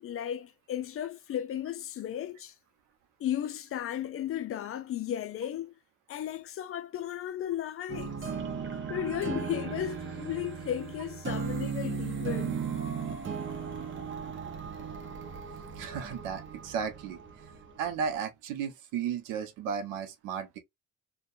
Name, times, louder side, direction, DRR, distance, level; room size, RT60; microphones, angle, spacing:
voice 1, 0.0-2.5 3.2-5.7 6.1-8.2 8.9-12.6, left 11 dB, 45° left, 0.4 m, -35 dB
sound 1, 7.9-18.1, right 6 dB, 40° right, 0.8 m, -36 dB
voice 2, 15.7-17.2 17.5-20.6, right 7 dB, 90° right, 0.7 m, -34 dB
2.7 x 2.2 x 2.4 m
supercardioid pair, 70°, 31 cm